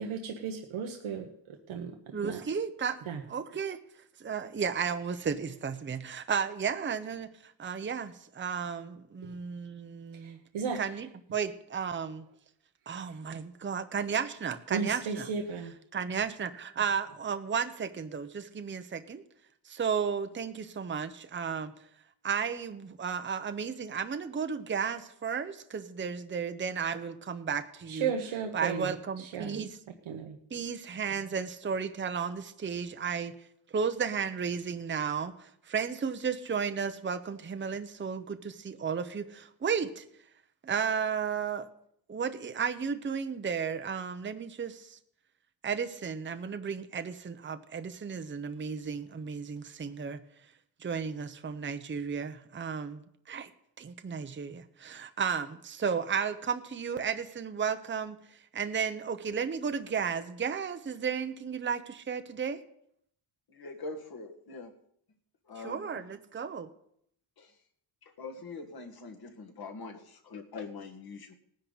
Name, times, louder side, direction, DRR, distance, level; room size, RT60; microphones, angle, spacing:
voice 1, 0.0-2.4 3.1-3.2 9.2-9.3 10.2-10.8 14.7-15.7 27.9-28.9 29.2-29.6 30.1-30.4, right 6 dB, 85° right, 1.3 m, -35 dB
voice 2, 2.1-3.0 3.3-3.8 4.2-10.4 10.7-12.2 12.9-15.3 15.9-19.2 19.6-21.7 22.2-28.1 28.5-29.8 30.5-33.3 33.7-40.0 40.6-41.7 42.1-45.0 45.6-50.2 50.8-53.5 53.8-62.6 65.6-66.7, right 6 dB, 25° right, 0.8 m, -33 dB
voice 3, 63.5-64.7 65.5-65.9 68.2-71.3, left 3 dB, 50° left, 1.8 m, -43 dB
18.5 x 10.0 x 4.0 m
cardioid pair, 105°, 47 cm